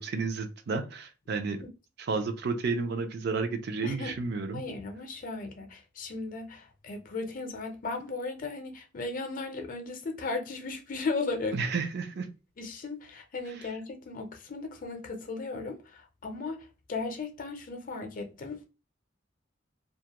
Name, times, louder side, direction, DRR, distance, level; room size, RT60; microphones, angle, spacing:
voice 1, 0.0-1.6 2.1-4.6 11.5-12.3, right 4 dB, 60° right, 0.4 m, -31 dB
voice 2, 3.8-4.2 4.5-11.6 12.6-18.6, left 3 dB, 45° left, 0.5 m, -36 dB
2.3 x 2.1 x 2.8 m
head